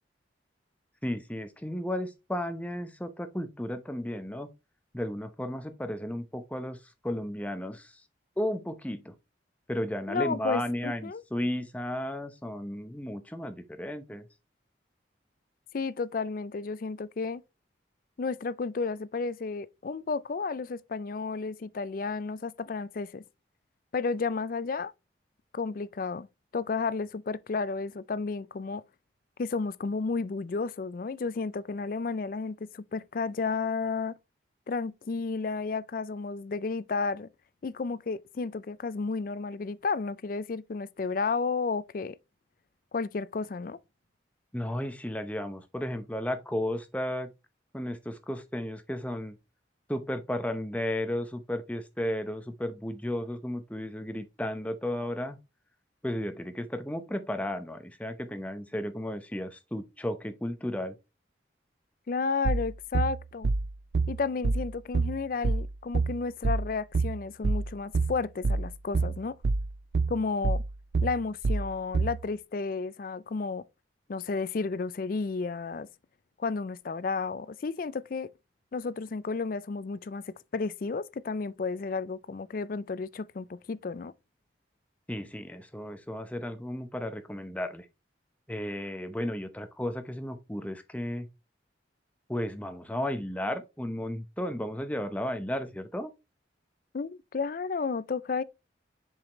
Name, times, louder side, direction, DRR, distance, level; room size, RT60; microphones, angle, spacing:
voice 1, 1.0-4.5 4.9-8.0 8.4-9.1 9.7-14.3 44.5-47.3 47.7-49.4 49.9-55.4 56.0-61.0 85.1-87.9 88.5-91.3 92.3-96.1, left 1 dB, 5° left, 0.7 m, -34 dB
voice 2, 10.1-11.2 15.7-17.4 18.2-23.2 23.9-24.9 25.5-26.3 26.5-28.8 29.4-34.1 34.7-37.3 37.6-42.2 42.9-43.8 62.1-63.5 64.1-69.4 70.1-70.6 71.0-73.6 74.1-75.9 76.4-78.3 78.7-84.1 96.9-98.4, left 4 dB, 45° left, 0.4 m, -32 dB
sound 1, 62.5-72.2, right 3 dB, 60° right, 0.4 m, -27 dB
7.2 x 4.9 x 3.0 m
head